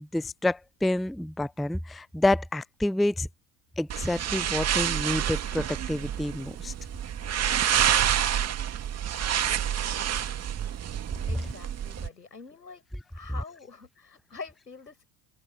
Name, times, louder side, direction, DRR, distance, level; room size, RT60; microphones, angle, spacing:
voice 1, 0.0-3.3 3.8-6.7, left 1 dB, ahead, 0.5 m, -28 dB
sound 1, 3.9-12.1, right 10 dB, 30° right, 2.1 m, -28 dB
voice 2, 11.3-12.8 13.1-15.0, left 4 dB, 90° left, 7.9 m, -45 dB
open air
figure-of-eight pair, 75°, 48 cm